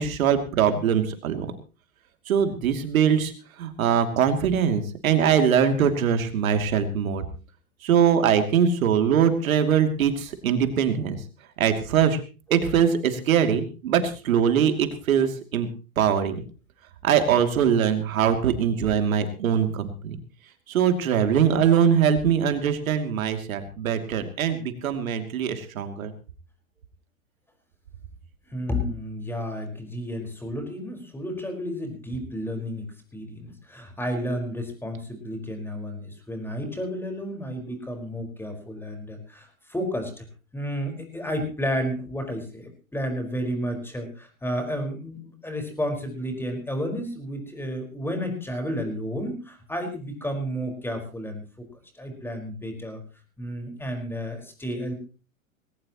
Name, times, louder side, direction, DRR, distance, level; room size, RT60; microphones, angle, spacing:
voice 1, 0.0-1.5 2.3-3.3 3.6-7.3 7.8-11.2 11.6-12.2 12.5-15.7 16.0-16.4 17.0-20.2 20.7-26.1, right 8 dB, 70° right, 7 dB, 2.9 m, -22 dB
voice 2, 28.5-40.3 40.5-51.6 51.9-53.0 53.4-54.9, equal, 5° left, 4 dB, 5.0 m, -32 dB
20.0 x 18.0 x 3.1 m, 0.34 s
hypercardioid pair, 105°, 43 cm